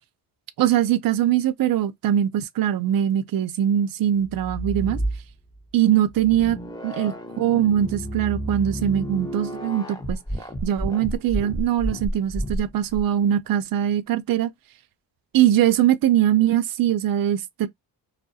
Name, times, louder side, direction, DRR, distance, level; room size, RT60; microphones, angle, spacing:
voice 1, 0.6-5.0 5.7-6.6 6.8-10.2 10.6-14.5 15.3-17.7, right 11 dB, 50° right, 0.5 m, -22 dB
sound 1, 4.2-5.6 6.1-13.0, right 1 dB, 10° left, 0.6 m, -31 dB
2.3 x 2.1 x 2.6 m
cardioid pair, 75°, 46 cm